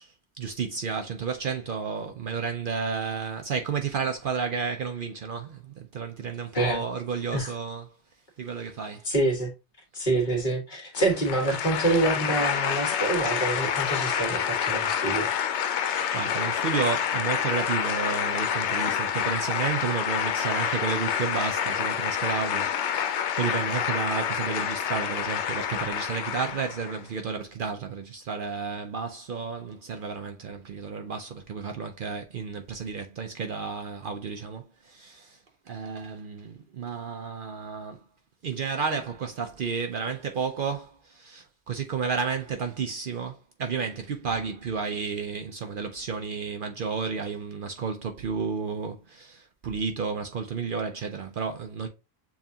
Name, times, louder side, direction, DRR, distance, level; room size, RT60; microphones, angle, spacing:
voice 1, 0.0-7.9 8.4-9.1 15.7-35.4 35.7-38.0 38.4-51.9, right 5 dB, 60° right, 0.7 m, -32 dB
voice 2, 9.1-9.5 9.9-15.3, right 2 dB, 45° left, 1.6 m, -26 dB
sound 1, 10.9-27.0, left 8 dB, 90° left, 0.9 m, -28 dB
7.1 x 2.4 x 2.7 m
omnidirectional pair, 1.1 m